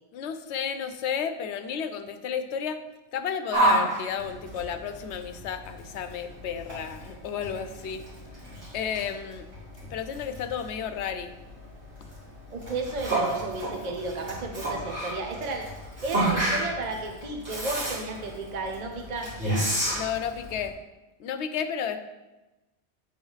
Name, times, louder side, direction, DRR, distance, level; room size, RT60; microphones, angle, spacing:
voice 1, 0.1-2.8 3.1-8.1 8.7-9.5 9.8-11.4 19.9-20.8 21.2-22.0, left 7 dB, 75° left, 9 dB, 0.9 m, -32 dB
Yell, 3.5-20.7, right 1 dB, 80° right, 2.6 m, -31 dB
voice 2, 12.5-15.7 16.0-19.6, right 3 dB, 45° right, 2 dB, 0.8 m, -33 dB
9.0 x 3.2 x 5.4 m, 1.1 s
omnidirectional pair, 1.2 m